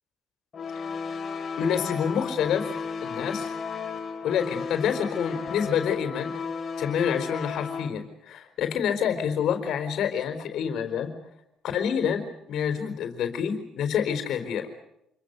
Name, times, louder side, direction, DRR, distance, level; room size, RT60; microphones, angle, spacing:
sound 1, 0.5-7.9, left 5 dB, 40° left, 3.6 m, -34 dB
voice 1, 1.6-2.7 3.0-3.5 4.2-6.3 6.8-11.1 11.6-14.7, left 8 dB, 70° left, 4 dB, 4.3 m, -27 dB
28.0 x 23.0 x 6.9 m, 0.82 s
cardioid pair, 85°, 0 cm